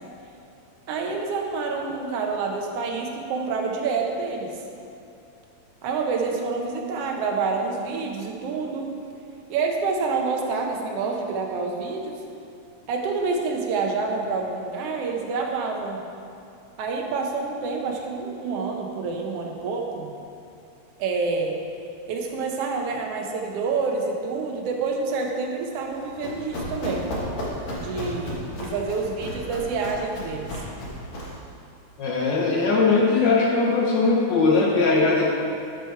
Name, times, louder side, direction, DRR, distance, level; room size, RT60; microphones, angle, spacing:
voice 1, 0.9-4.6 5.8-8.9 9.5-12.2 12.9-16.0 16.8-20.1 21.0-21.6 22.1-27.1 27.8-30.6, right 4 dB, 65° right, 1 dB, 1.6 m, -28 dB
Run, 25.9-31.4, left 1 dB, 60° left, 2.6 m, -34 dB
voice 2, 32.0-35.2, left 3 dB, 80° left, -3 dB, 1.0 m, -20 dB
12.5 x 5.1 x 4.6 m, 2.6 s
omnidirectional pair, 3.5 m